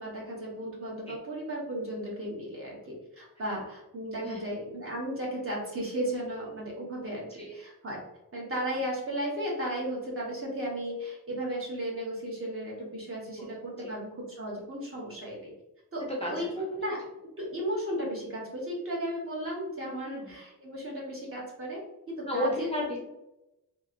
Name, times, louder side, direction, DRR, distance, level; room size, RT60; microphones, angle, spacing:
voice 1, 0.0-8.0 8.3-15.5 15.9-16.5 16.7-17.0 17.4-21.8 22.1-22.7, right 1 dB, 40° right, -4 dB, 1.0 m, -35 dB
voice 2, 16.2-16.5 20.0-20.3 22.3-23.0, left 1 dB, 20° left, -3 dB, 0.4 m, -33 dB
2.9 x 2.8 x 2.5 m, 0.92 s
wide cardioid pair, 175°, 35 cm